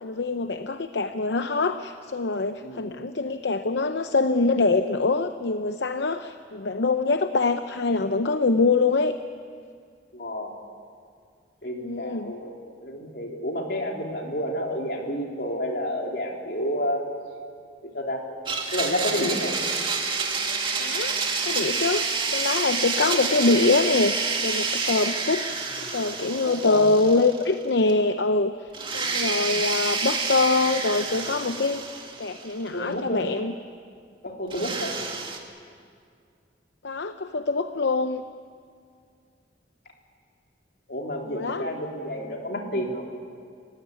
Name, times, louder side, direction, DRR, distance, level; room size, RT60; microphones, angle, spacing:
voice 1, 0.0-9.2 11.8-12.3 20.8-21.2 21.4-25.5 25.9-28.5 28.9-31.8 32.2-33.5 36.8-38.2 41.2-41.7, left 3 dB, 80° left, 9 dB, 0.7 m, -24 dB
voice 2, 2.6-3.0 10.1-10.5 11.6-17.0 17.9-18.2 18.7-19.6 26.5-26.9 29.2-29.5 32.7-33.3 34.2-35.0 40.9-43.0, left 1 dB, 60° left, 1 dB, 3.6 m, -30 dB
Domestic sounds home sounds, 18.5-27.6 27.9-28.0 28.7-32.7 34.5-35.4, right 4 dB, 30° right, 2.2 m, -28 dB
29.5 x 16.0 x 9.7 m, 2.2 s
head